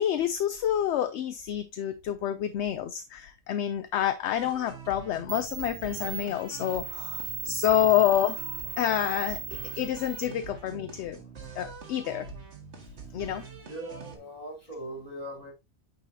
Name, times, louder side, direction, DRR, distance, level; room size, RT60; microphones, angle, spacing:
voice 1, 0.0-8.4 8.8-9.4 9.8-11.2 11.6-12.3 13.1-13.4, left 11 dB, 65° left, 0.8 m, -28 dB
sound 1, 4.3-14.2, right 6 dB, 55° right, 1.6 m, -45 dB
sound 2, 4.9-5.0 5.3-10.3, right 7 dB, 85° right, 1.1 m, -37 dB
voice 2, 7.3-7.6 12.8-15.5, right 1 dB, 30° left, 2.7 m, -42 dB
8.9 x 4.1 x 2.7 m
omnidirectional pair, 1.4 m